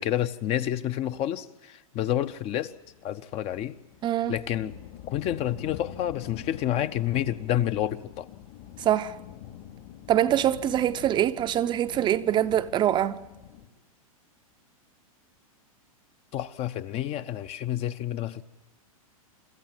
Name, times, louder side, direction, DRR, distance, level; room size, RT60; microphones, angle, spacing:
voice 1, 0.0-2.7 3.0-3.8 4.3-4.8 5.1-8.3 16.3-18.4, left 12 dB, 35° left, 0.7 m, -29 dB
sound 1, 2.4-13.7, left 11 dB, 60° left, 3.0 m, -46 dB
voice 2, 4.0-4.3 8.8-9.2 10.1-13.2, right 11 dB, 25° right, 0.6 m, -24 dB
26.0 x 13.5 x 9.0 m
hypercardioid pair, 125°, 19 cm